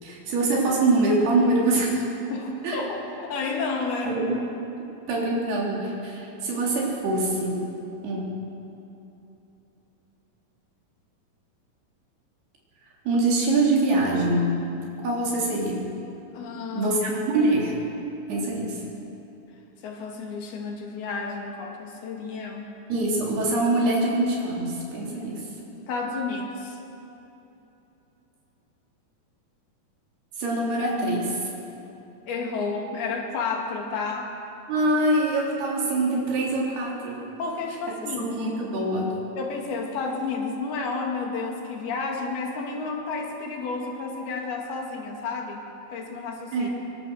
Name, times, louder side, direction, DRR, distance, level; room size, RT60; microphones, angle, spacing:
voice 1, 0.0-2.0 2.6-2.8 4.0-4.3 5.1-7.6 8.0-8.3 13.1-14.5 15.0-15.9 16.7-17.8 18.3-18.8 22.9-25.5 30.4-31.4 34.7-37.2 38.2-39.1 46.5-46.7, right 2 dB, 80° right, -3 dB, 5.7 m, -24 dB
voice 2, 2.3-4.2 16.3-17.0 19.8-22.7 25.9-26.8 32.3-34.3 37.4-38.3 39.4-45.7 45.9-46.7, left 4 dB, 75° left, 1 dB, 3.9 m, -31 dB
24.0 x 22.0 x 6.4 m, 3.0 s
omnidirectional pair, 4.5 m